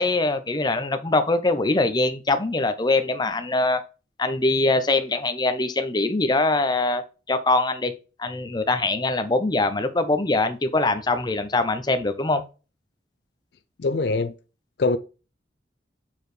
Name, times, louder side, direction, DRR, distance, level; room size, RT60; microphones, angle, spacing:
voice 1, 0.0-3.8 4.2-7.0 7.3-7.9 8.2-12.4, left 2 dB, 25° left, 0.6 m, -23 dB
voice 2, 13.8-14.3 14.8-15.0, left 3 dB, 60° left, 0.5 m, -22 dB
7.2 x 4.6 x 3.2 m
head